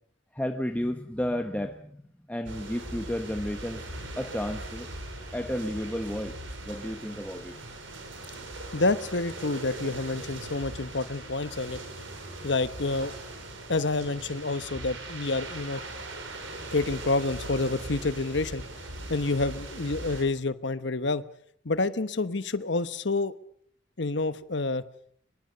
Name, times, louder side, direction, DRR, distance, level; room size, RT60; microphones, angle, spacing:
voice 1, 0.3-2.0 2.3-3.9 4.2-4.9 5.3-6.4 6.6-7.6, equal, 5° left, 5 dB, 1.1 m, -32 dB
sound 1, 2.4-20.2, right 2 dB, 80° right, 5.4 m, -40 dB
voice 2, 8.7-12.1 12.4-13.1 13.7-15.8 16.7-18.6 19.1-21.2 21.6-23.3 24.0-24.8, left 3 dB, 65° left, 13 dB, 1.1 m, -28 dB
23.5 x 22.0 x 6.8 m, 0.64 s
head